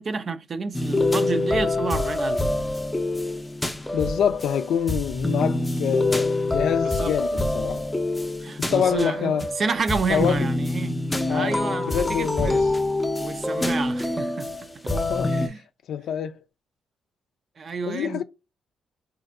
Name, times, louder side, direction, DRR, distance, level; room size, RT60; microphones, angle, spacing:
voice 1, 0.0-2.5 6.8-7.2 8.4-12.7 13.2-14.7 15.3-15.6 17.6-18.2, right 4 dB, 50° right, 0.4 m, -30 dB
sound 1, 0.7-15.5, left 2 dB, 15° left, 0.5 m, -26 dB
voice 2, 3.9-7.9 8.6-9.5 10.1-10.5 11.3-12.7 14.9-15.4 15.9-16.4 17.9-18.2, left 8 dB, 75° left, 0.4 m, -26 dB
4.1 x 2.5 x 2.5 m
cardioid pair, 75°, 0 cm